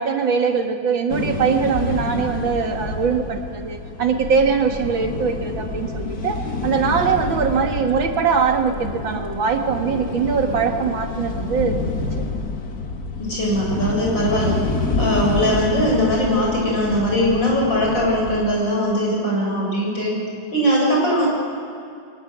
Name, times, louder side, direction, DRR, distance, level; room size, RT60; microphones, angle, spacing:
voice 1, 0.0-11.9, right 6 dB, 70° right, 4 dB, 2.5 m, -22 dB
sound 1, 1.1-18.4, left 3 dB, 45° left, 2.2 m, -28 dB
voice 2, 13.2-14.6 15.0-20.1 20.5-21.3, equal, 65° left, -2 dB, 8.2 m, -20 dB
22.5 x 20.0 x 8.1 m, 2.5 s
omnidirectional pair, 2.2 m